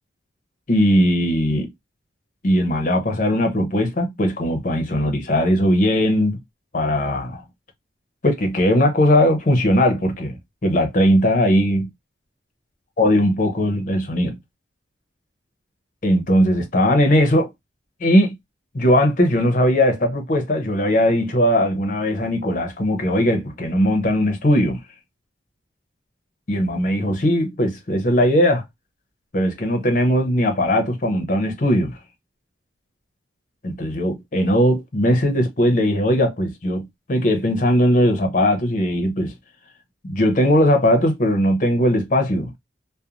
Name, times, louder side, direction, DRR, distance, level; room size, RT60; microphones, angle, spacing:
voice 1, 0.7-1.7 2.4-6.4 6.7-7.4 8.2-11.9 13.0-14.4 16.0-17.5 18.0-18.4 18.7-24.8 26.5-28.6 29.3-32.0 33.6-39.3 40.0-42.5, equal, 45° left, 0.7 m, -19 dB
3.0 x 2.1 x 2.4 m
head